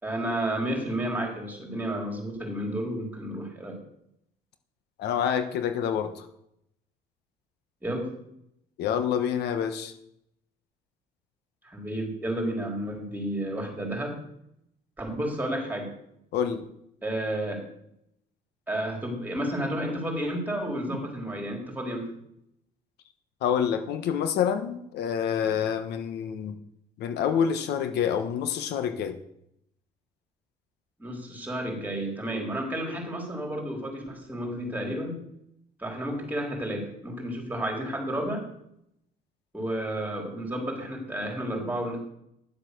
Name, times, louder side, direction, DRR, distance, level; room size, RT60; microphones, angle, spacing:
voice 1, 0.0-3.8 7.8-8.1 11.6-14.2 15.0-15.9 17.0-17.6 18.7-22.0 31.0-35.2 35.8-38.4 39.5-42.0, right 1 dB, 10° right, 0 dB, 4.1 m, -31 dB
voice 2, 5.0-6.3 8.8-9.9 16.3-16.7 23.4-26.6 27.0-29.2, left 8 dB, 80° left, 8 dB, 1.2 m, -27 dB
11.0 x 7.6 x 6.7 m, 0.77 s
cardioid pair, 110°, 17 cm